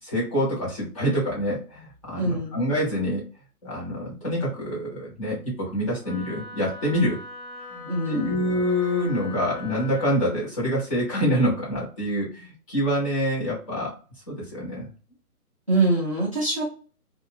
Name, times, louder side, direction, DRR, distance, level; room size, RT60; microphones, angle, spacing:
voice 1, 0.0-3.2 3.6-7.2 7.7-13.9 14.3-14.9, equal, 20° left, -7 dB, 1.3 m, -26 dB
voice 2, 2.2-2.6 7.9-8.4 15.7-16.6, right 2 dB, 20° right, -8 dB, 0.6 m, -24 dB
Wind instrument woodwind instrument, 6.0-10.2, left 3 dB, 75° left, 0.9 m, -41 dB
2.5 x 2.4 x 3.5 m, 0.36 s
figure-of-eight pair, 150°, 46 cm